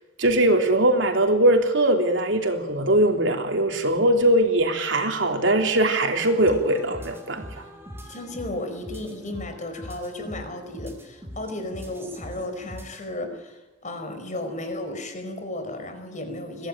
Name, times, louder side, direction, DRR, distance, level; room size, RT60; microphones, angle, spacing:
voice 1, 0.2-7.4, right 1 dB, 70° right, 4 dB, 3.3 m, -21 dB
sound 1, 6.2-13.1, equal, 15° right, 3.9 m, -42 dB
voice 2, 8.1-16.7, left 1 dB, 40° left, 7 dB, 5.0 m, -34 dB
23.0 x 16.5 x 9.1 m, 1.1 s
head